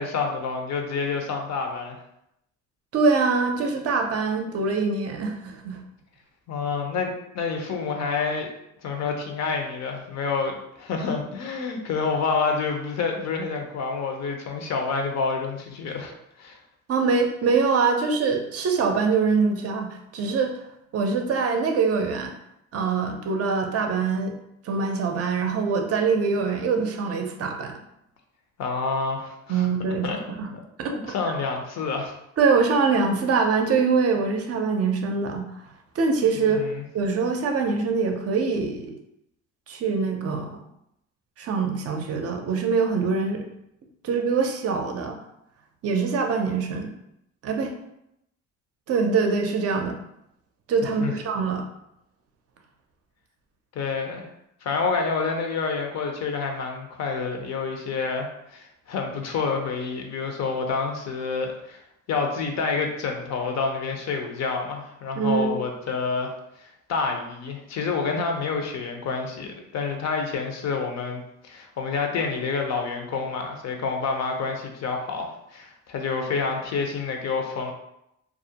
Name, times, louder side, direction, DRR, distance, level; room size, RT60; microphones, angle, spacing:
voice 1, 0.0-2.0 6.5-8.5 8.8-16.6 28.6-29.7 30.0-30.2 30.8-32.1 36.3-36.8 51.0-51.1 53.7-54.3 54.6-61.8 62.1-66.3 66.6-77.7, left 4 dB, 60° left, 3 dB, 0.6 m, -28 dB
voice 2, 2.9-5.8 16.9-20.5 20.9-22.3 22.7-24.3 24.6-27.7 29.5-30.1 30.4-30.5 30.8-31.1 32.4-35.5 36.0-36.7 36.9-38.9 39.7-40.6 41.4-43.4 44.0-45.2 45.8-46.9 47.4-47.7 48.9-50.0 50.7-51.7 65.2-65.5, right 4 dB, 55° right, 3 dB, 0.5 m, -24 dB
2.4 x 2.0 x 2.7 m, 0.80 s
cardioid pair, 90°, 30 cm